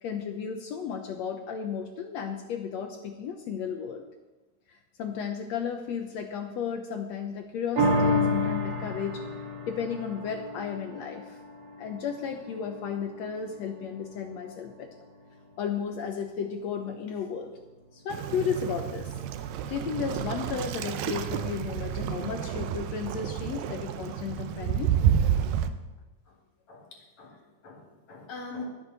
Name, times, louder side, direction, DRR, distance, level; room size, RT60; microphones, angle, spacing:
voice 1, 0.0-4.0 4.7-9.2 9.7-11.4 11.8-14.9 15.6-17.6 17.9-19.2 19.7-24.9, left 7 dB, 75° left, 4 dB, 1.6 m, -34 dB
sound 1, 7.8-14.4 14.9-15.0, left 1 dB, 45° right, 2.0 m, -31 dB
Waves surf, 18.1-25.7, right 9 dB, 85° right, 2.5 m, -30 dB
voice 2, 26.7-28.7, left 3 dB, 55° left, 0 dB, 3.2 m, -43 dB
21.5 x 8.0 x 4.1 m, 1.2 s
omnidirectional pair, 4.0 m